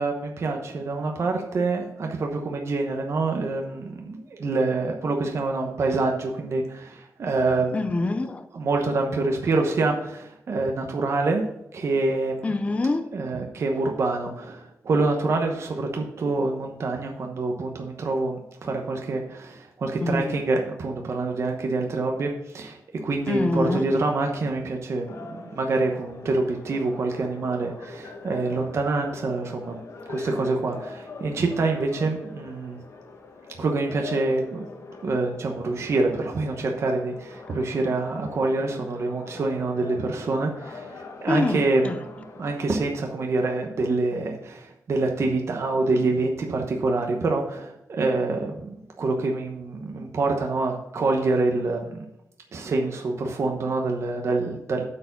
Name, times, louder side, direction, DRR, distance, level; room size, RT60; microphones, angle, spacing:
voice 1, 0.0-7.8 8.5-11.4 11.7-12.6 13.1-29.8 30.1-32.8 33.6-34.7 35.0-42.1 42.3-52.0 52.5-54.9, right 3 dB, 50° right, 1.0 m, -26 dB
voice 2, 7.7-8.5 12.4-13.1 20.0-20.4 23.3-23.9 41.3-42.0, left 2 dB, 20° left, 0.4 m, -25 dB
sound 1, 25.1-42.7, left 3 dB, 50° left, 1.2 m, -42 dB
8.4 x 4.6 x 7.1 m
wide cardioid pair, 180°, 6 cm